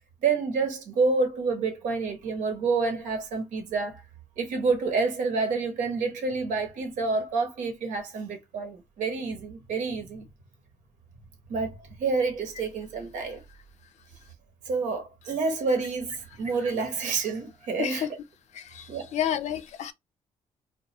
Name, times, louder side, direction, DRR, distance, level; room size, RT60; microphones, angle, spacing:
voice 1, 0.2-4.0 4.4-10.3 11.5-13.4 14.6-18.2 18.9-19.1, right 4 dB, 85° right, 1.0 m, -28 dB
voice 2, 17.8-18.1 18.5-19.9, left 10 dB, 65° left, 0.4 m, -30 dB
2.3 x 2.3 x 2.9 m
cardioid pair, 95°, 13 cm